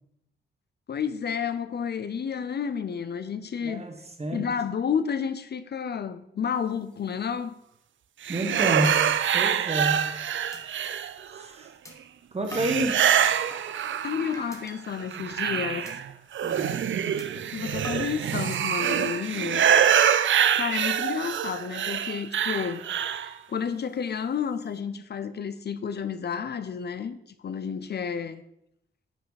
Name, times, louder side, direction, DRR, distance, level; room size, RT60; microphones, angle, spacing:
voice 1, 0.9-3.8 4.3-7.6 14.0-15.9 17.5-19.7 20.5-22.8 23.5-27.2 27.4-28.4, left 7 dB, 55° left, 0.5 m, -31 dB
voice 2, 3.6-3.9 4.2-4.4 8.3-10.1 11.3-11.7 12.3-13.1 16.4-16.8, right 1 dB, 30° right, 1.3 m, -29 dB
sound 1, 8.2-11.4 12.5-14.5 14.9-23.3, right 9 dB, 70° right, 0.5 m, -25 dB
sound 2, 10.5-10.6 11.0-11.1 11.9-12.0 12.5-13.8 14.3-14.8 15.2-15.4 15.9-16.0 16.4-16.6 17.2-17.3 17.8-19.1 19.7-20.1, left 1 dB, 15° left, 1.2 m, -44 dB
10.0 x 5.7 x 4.0 m
wide cardioid pair, 130°, 20 cm